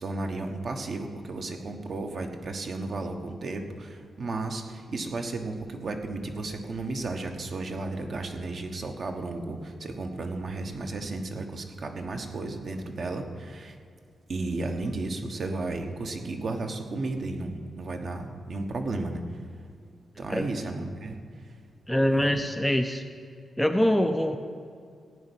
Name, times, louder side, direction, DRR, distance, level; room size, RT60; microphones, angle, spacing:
voice 1, 0.0-13.7 14.3-19.2 20.2-21.2 22.2-22.4, right 2 dB, 45° right, 4 dB, 1.2 m, -33 dB
voice 2, 21.9-23.0 23.6-24.4, equal, 5° left, 6 dB, 0.5 m, -24 dB
15.5 x 5.4 x 9.9 m, 2.3 s
wide cardioid pair, 160°, 0 cm